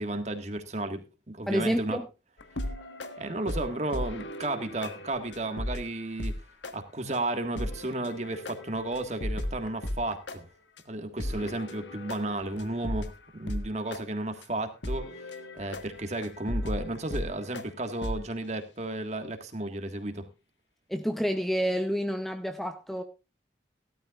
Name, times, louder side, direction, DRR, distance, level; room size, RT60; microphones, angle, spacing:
voice 1, 0.0-2.0 3.2-6.3 6.7-10.5 10.9-20.3, right 2 dB, 40° right, 1.7 m, -33 dB
voice 2, 1.5-2.0 20.9-23.0, equal, ahead, 0.7 m, -29 dB
sound 1, 2.4-6.4 6.6-6.7 7.1-7.2 7.6-10.4 10.8-10.9 11.2-13.7 13.9-14.0 14.4-14.5 14.8-17.6 18.0-18.2, left 1 dB, 90° left, 1.5 m, -36 dB
17.5 x 12.5 x 2.4 m
head